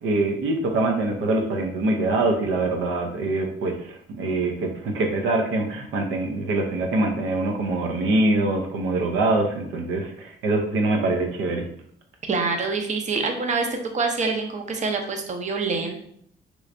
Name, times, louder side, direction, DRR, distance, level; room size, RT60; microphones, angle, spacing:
voice 1, 0.0-11.6, right 2 dB, 85° right, 3 dB, 0.6 m, -24 dB
voice 2, 12.3-16.0, right 4 dB, 35° right, 4 dB, 0.6 m, -26 dB
3.2 x 3.0 x 2.5 m, 0.66 s
cardioid pair, 90°, 20 cm